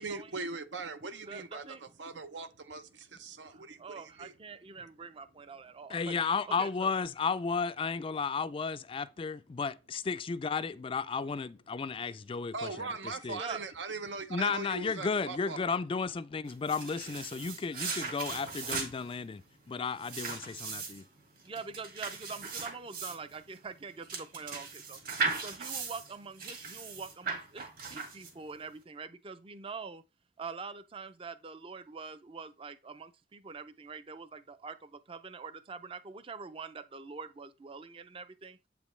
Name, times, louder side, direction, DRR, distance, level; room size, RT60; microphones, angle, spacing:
voice 1, 0.0-4.4 12.5-15.8, right 3 dB, 80° right, 0.8 m, -40 dB
voice 2, 1.3-1.8 3.5-6.2 6.5-6.9 13.4-13.6 21.4-25.0 25.4-30.0 30.4-38.6, right 5 dB, 30° right, 0.5 m, -44 dB
voice 3, 5.9-12.9 13.2-13.4 14.3-19.4 19.7-21.0, left 5 dB, 30° left, 0.3 m, -33 dB
sound 1, 16.5-28.6, right 4 dB, 55° right, 2.1 m, -38 dB
8.1 x 5.1 x 3.2 m
head